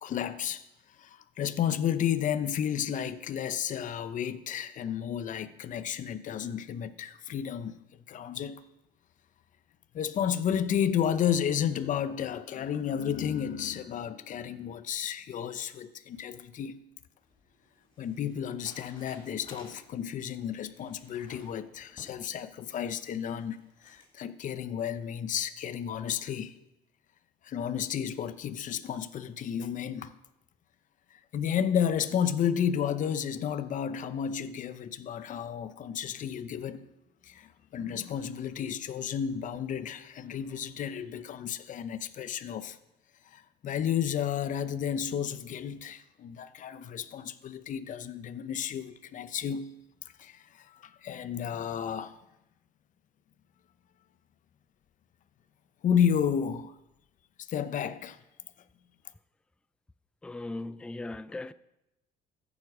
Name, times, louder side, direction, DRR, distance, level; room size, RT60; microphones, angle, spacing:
voice 1, 0.0-0.6 1.0-7.8 8.1-8.6 9.9-16.8 18.0-23.6 23.8-26.6 27.4-30.2 31.1-36.9 37.2-42.8 43.3-49.7 50.2-52.2 55.8-56.7 57.4-58.2, left 8 dB, 50° left, 0.7 m, -32 dB
sound 1, 16.8-24.1, left 2 dB, 30° left, 4.1 m, -57 dB
voice 2, 60.2-61.5, left 2 dB, 5° left, 0.3 m, -38 dB
14.5 x 7.3 x 4.9 m
cardioid pair, 110°, 17 cm